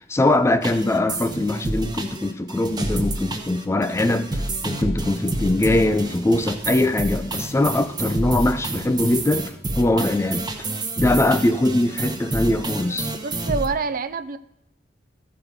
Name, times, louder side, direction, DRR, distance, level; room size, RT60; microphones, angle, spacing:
voice 1, 0.0-10.5 11.0-13.1, left 2 dB, 15° left, 0.3 m, -22 dB
sound 1, 0.6-13.7, right 2 dB, 25° right, 0.8 m, -29 dB
voice 2, 13.2-14.4, right 4 dB, 50° right, 0.4 m, -26 dB
14.0 x 4.8 x 5.0 m
head